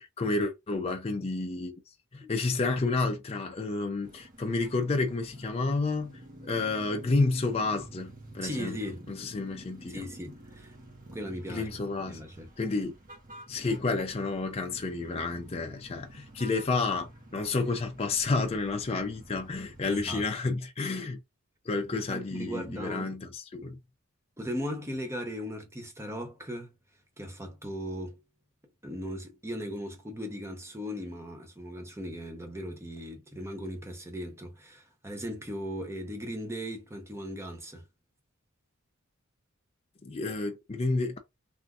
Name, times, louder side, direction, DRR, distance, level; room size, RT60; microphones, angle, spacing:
voice 1, 0.2-1.7 2.1-6.1 6.4-8.8 9.1-10.0 11.5-12.2 12.6-12.9 13.5-21.2 21.7-23.8 40.0-41.2, left 3 dB, 30° left, 0.5 m, -30 dB
sound 1, 4.0-20.2, right 1 dB, 40° right, 1.1 m, -50 dB
voice 2, 8.4-9.1 9.9-10.8 11.1-11.7 12.1-12.5 19.9-20.2 21.9-23.1 24.4-26.7 27.2-28.2 28.8-37.8, equal, 15° right, 0.8 m, -38 dB
3.5 x 2.6 x 2.3 m
head